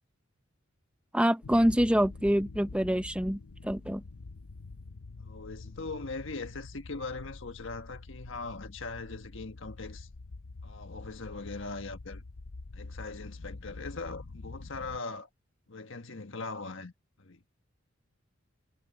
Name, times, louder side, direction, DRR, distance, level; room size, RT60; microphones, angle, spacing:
voice 1, 1.1-4.0, equal, 5° right, 0.9 m, -26 dB
sound 1, 1.4-15.0, left 3 dB, 80° left, 0.8 m, -46 dB
voice 2, 5.2-10.1 10.6-12.2 12.7-15.3 15.7-16.9 17.2-17.4, left 3 dB, 60° left, 1.5 m, -40 dB
head